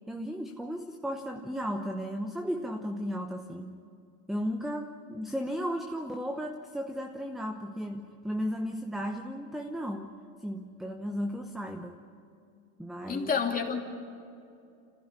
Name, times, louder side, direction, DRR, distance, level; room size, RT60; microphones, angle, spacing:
voice 1, 0.1-3.8 4.3-10.1 10.4-12.0 12.8-13.3, equal, ahead, 4 dB, 0.9 m, -35 dB
voice 2, 13.1-13.8, left 6 dB, 20° left, 2 dB, 2.8 m, -29 dB
25.5 x 15.5 x 9.7 m, 2.5 s
supercardioid pair, 125°, 45 cm